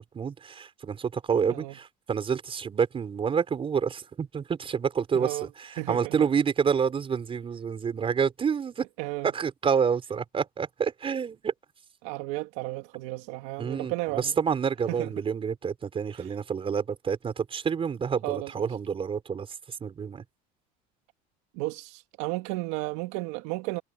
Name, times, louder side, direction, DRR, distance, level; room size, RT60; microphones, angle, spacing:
voice 1, 0.1-8.9 9.2-11.5 13.6-19.5 19.8-20.2, right 6 dB, 30° right, 5.4 m, -28 dB
voice 2, 5.1-5.5 5.8-6.2 9.0-9.3 12.0-14.3 14.9-15.1 16.2-16.3 18.2-18.7 21.6-23.8, right 21 dB, 80° right, 2.3 m, -33 dB
supercardioid pair, 115°, 19 cm